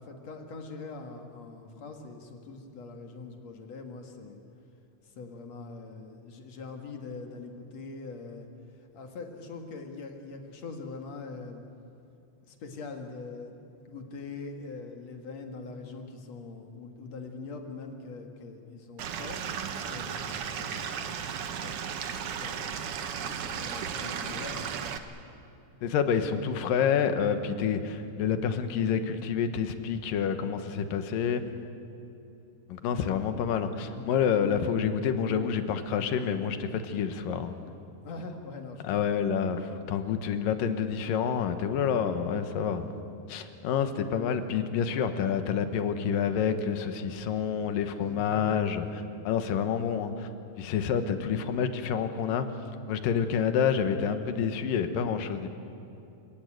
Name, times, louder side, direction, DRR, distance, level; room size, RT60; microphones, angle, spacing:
voice 1, 0.0-4.4 5.0-8.5 8.9-11.6 12.4-19.4 19.9-22.7 23.2-24.9 33.9-34.1 38.0-39.1 48.0-48.2, left 3 dB, 55° left, 4 dB, 2.9 m, -43 dB
Stream / Liquid, 19.0-25.0, right 7 dB, 60° right, 1.6 m, -35 dB
voice 2, 25.8-31.4 32.7-37.5 38.8-42.9 43.3-50.3 50.6-52.5 52.9-55.5, left 7 dB, 85° left, 9 dB, 2.9 m, -28 dB
28.0 x 17.5 x 9.1 m, 2.8 s
omnidirectional pair, 3.8 m